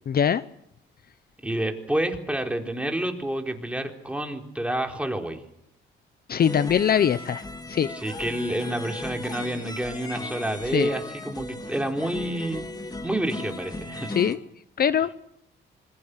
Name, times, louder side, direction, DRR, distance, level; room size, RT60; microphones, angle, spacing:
voice 1, 0.1-0.4 6.3-7.9 10.7-10.9 14.1-14.4 14.8-15.1, left 8 dB, 50° left, 15 dB, 0.8 m, -22 dB
voice 2, 1.4-5.4 7.9-12.6 13.0-14.1, right 1 dB, 5° right, 3 dB, 4.1 m, -29 dB
sound 1, 6.4-14.4, left 1 dB, 20° left, 2.9 m, -37 dB
26.5 x 22.0 x 6.7 m, 0.73 s
cardioid pair, 90°, 20 cm